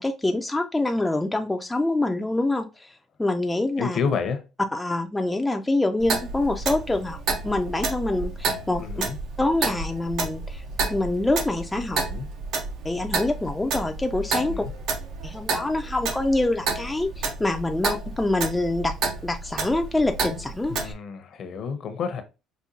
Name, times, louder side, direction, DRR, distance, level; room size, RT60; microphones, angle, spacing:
voice 1, 0.0-4.0 4.7-8.8 9.4-12.0 12.8-14.6 15.2-18.9 19.2-20.9, left 2 dB, 10° left, 0.4 m, -26 dB
voice 2, 3.8-4.4 8.8-9.2 11.9-12.3 14.5-14.7 20.7-22.2, left 6 dB, 55° left, 0.7 m, -29 dB
Clock, 6.0-20.9, right 4 dB, 70° right, 0.7 m, -30 dB
5.0 x 2.2 x 2.6 m
cardioid pair, 100°, 0 cm